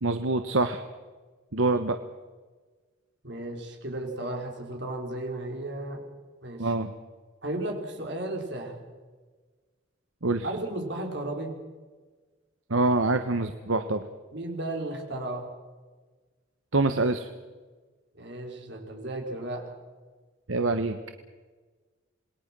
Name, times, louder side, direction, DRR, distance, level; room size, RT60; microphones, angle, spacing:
voice 1, 0.0-0.8 1.5-2.0 6.6-6.9 10.2-10.5 12.7-14.0 16.7-17.3 20.5-21.0, right 2 dB, 80° right, 8 dB, 1.2 m, -25 dB
voice 2, 3.2-6.0 6.4-6.7 7.4-8.8 10.4-11.6 14.3-15.5 18.1-19.6, right 1 dB, 55° right, 2 dB, 5.0 m, -34 dB
27.5 x 20.5 x 6.2 m, 1.4 s
head